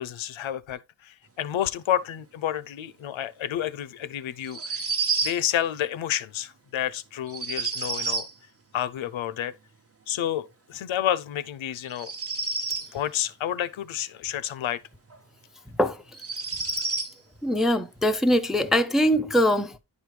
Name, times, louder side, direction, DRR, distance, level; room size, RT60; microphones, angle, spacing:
voice 1, 0.0-4.8 5.2-8.3 8.7-9.6 10.1-12.1 12.9-14.8, left 11 dB, 85° left, 0.6 m, -30 dB
sound 1, 4.4-5.4 7.3-8.3 11.9-12.9 15.1-15.2 16.1-17.1, right 4 dB, 30° right, 0.9 m, -29 dB
voice 2, 17.4-19.8, equal, ahead, 0.4 m, -22 dB
9.8 x 5.1 x 3.2 m
wide cardioid pair, 160°, 46 cm